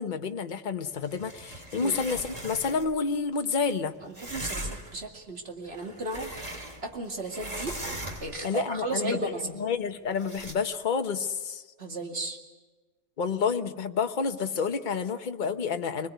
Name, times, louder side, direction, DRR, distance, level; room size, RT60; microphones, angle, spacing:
voice 1, 0.0-3.9 8.4-11.6 13.2-16.1, left 5 dB, 40° left, 7 dB, 1.1 m, -29 dB
sound 1, 1.0-3.0 4.1-5.0 5.6-7.0 7.3-8.5 10.2-10.5, right 1 dB, 30° right, 2.5 m, -39 dB
voice 2, 4.0-7.7 8.2-9.4 11.8-12.4, right 2 dB, 45° right, 2 dB, 2.6 m, -35 dB
25.5 x 20.5 x 9.3 m, 1.3 s
omnidirectional pair, 1.4 m